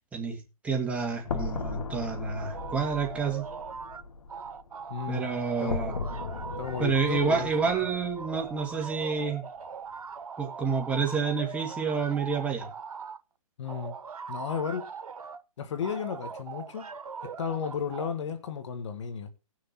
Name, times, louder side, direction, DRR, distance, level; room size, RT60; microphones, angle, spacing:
voice 1, 0.1-3.4 5.1-6.0 6.8-9.4 10.4-12.7, right 5 dB, 5° right, 2.1 m, -29 dB
sound 1, 1.3-5.3 5.7-9.0, left 4 dB, 75° left, 1.6 m, -38 dB
sound 2, 2.4-4.0 4.3-13.2 13.6-15.4 15.8-18.1, right 6 dB, 90° right, 1.2 m, -41 dB
voice 2, 4.9-5.3 5.6-6.0 6.6-7.7 13.6-14.0 14.3-14.9 15.6-16.9 17.2-19.3, left 6 dB, 55° left, 1.8 m, -34 dB
18.0 x 6.5 x 4.4 m
hypercardioid pair, 155°, 18 cm